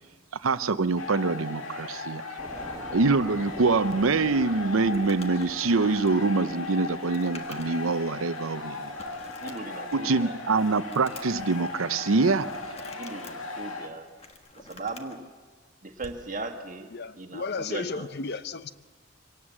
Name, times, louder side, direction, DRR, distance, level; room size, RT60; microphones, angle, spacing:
voice 1, 0.4-2.2 2.9-8.9 9.9-12.5, right 3 dB, 80° right, 0.7 m, -25 dB
sound 1, 1.0-13.9, left 3 dB, 80° left, 2.3 m, -37 dB
sound 2, 2.4-14.3, right 1 dB, 15° right, 2.3 m, -49 dB
Crumpling crinkling, 4.8-8.0 8.3-8.4 9.0-10.1 10.5-11.5 12.4-13.3 14.0-15.2 16.0-16.2, left 3 dB, 30° left, 1.5 m, -47 dB
voice 2, 9.4-10.3 12.9-14.1 14.6-15.2 15.8-18.1, right 3 dB, 40° right, 1.6 m, -38 dB
voice 3, 16.9-18.7, left 4 dB, 50° left, 0.7 m, -34 dB
24.5 x 18.0 x 7.3 m
head